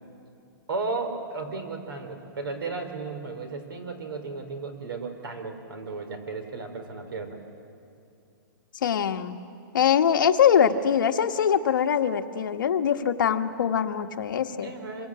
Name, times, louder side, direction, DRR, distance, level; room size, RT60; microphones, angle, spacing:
voice 1, 0.7-7.4 14.6-15.1, right 3 dB, 80° right, 8 dB, 4.3 m, -34 dB
voice 2, 8.8-9.4 9.7-14.7, left 8 dB, 60° left, 6 dB, 1.4 m, -23 dB
26.0 x 23.0 x 8.9 m, 2.6 s
hypercardioid pair, 180°, 12 cm